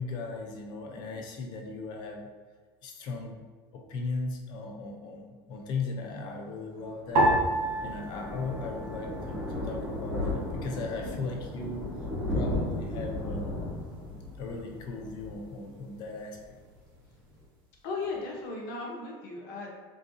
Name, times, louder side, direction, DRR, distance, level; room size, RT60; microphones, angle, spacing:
voice 1, 0.0-2.3 2.8-3.4 3.7-7.3 7.8-11.9 12.3-13.6 14.4-16.4, left 3 dB, 35° left, 2 dB, 0.4 m, -37 dB
Thunder, 6.8-16.2 16.5-16.7 17.0-17.1 17.3-17.4, left 1 dB, 5° left, 0.9 m, -35 dB
sound 1, 7.2-9.7 9.9-10.8 11.5-11.9, right 1 dB, 40° right, 0.6 m, -30 dB
voice 2, 17.8-19.7, left 3 dB, 60° left, -1 dB, 0.8 m, -36 dB
3.8 x 2.5 x 2.6 m, 1.4 s
cardioid pair, 175°, 13 cm